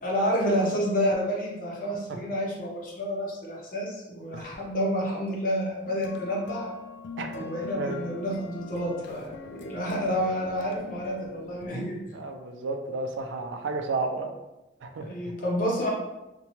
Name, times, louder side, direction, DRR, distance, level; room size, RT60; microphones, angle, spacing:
voice 1, 0.0-6.7 7.3-12.1 15.0-15.9, equal, 45° left, -3 dB, 0.7 m, -29 dB
sound 1, 5.9-11.7, left 3 dB, 65° left, 0.3 m, -42 dB
voice 2, 12.1-14.3 14.8-15.1, right 3 dB, 80° right, 5 dB, 0.4 m, -32 dB
2.7 x 2.2 x 2.9 m, 0.99 s
head